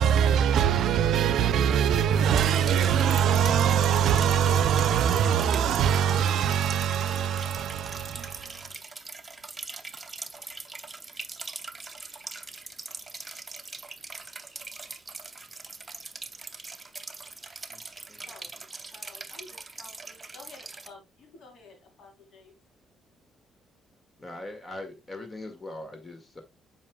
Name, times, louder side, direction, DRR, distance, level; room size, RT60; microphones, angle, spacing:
voice 1, 0.0-8.7, right 8 dB, 75° right, 0.5 m, -23 dB
sound 1, 2.3-20.9, right 3 dB, 25° right, 0.7 m, -42 dB
voice 2, 18.3-22.5, left 3 dB, 65° left, 3.4 m, -52 dB
voice 3, 24.2-26.4, left 2 dB, 25° left, 1.9 m, -41 dB
7.5 x 5.5 x 2.3 m
cardioid pair, 90°, 0 cm